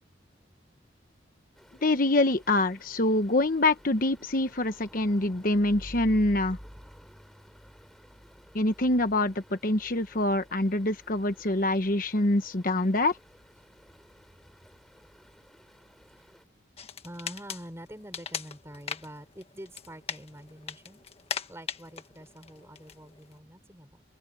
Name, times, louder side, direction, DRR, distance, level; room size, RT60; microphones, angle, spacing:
Stream, 1.6-16.4, equal, ahead, 3.9 m, -51 dB
voice 1, 1.8-6.6 8.5-13.2, left 2 dB, 50° left, 1.1 m, -25 dB
sound 1, 16.8-23.4, left 7 dB, 35° left, 1.5 m, -40 dB
voice 2, 17.0-21.1 21.5-24.0, equal, 15° right, 5.5 m, -46 dB
head